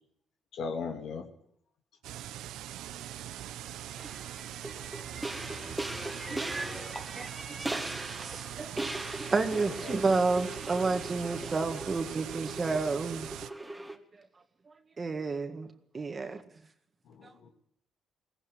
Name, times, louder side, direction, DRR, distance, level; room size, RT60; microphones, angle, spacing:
voice 1, 0.5-1.3 9.8-10.0 17.1-17.5, left 4 dB, 75° left, 2.6 m, -37 dB
sound 1, 2.0-13.5, right 12 dB, 90° right, 0.8 m, -42 dB
sound 2, 3.7-14.0, right 2 dB, 10° right, 2.1 m, -39 dB
voice 2, 4.7-7.1, left 1 dB, 20° left, 6.5 m, -48 dB
voice 3, 6.3-6.7 7.2-7.3 7.6-8.8 9.3-13.3 15.0-15.7 15.9-16.4, right 3 dB, 35° right, 1.9 m, -31 dB
19.5 x 16.5 x 9.6 m
cardioid pair, 90°, 0 cm